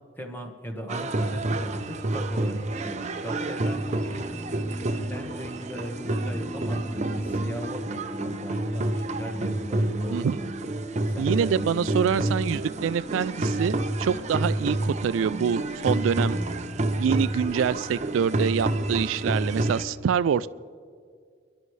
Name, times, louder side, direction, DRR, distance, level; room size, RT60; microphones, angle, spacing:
voice 1, 0.2-4.8 5.1-10.5 11.1-12.7, equal, 10° left, 3 dB, 1.3 m, -38 dB
sound 1, 0.9-19.8, right 2 dB, 35° right, 0.6 m, -29 dB
sound 2, 2.7-17.3, right 1 dB, 10° right, 0.9 m, -42 dB
voice 2, 10.1-10.4 11.2-16.4 17.0-20.5, right 7 dB, 80° right, 16 dB, 0.3 m, -26 dB
29.5 x 11.5 x 3.2 m, 2.1 s
head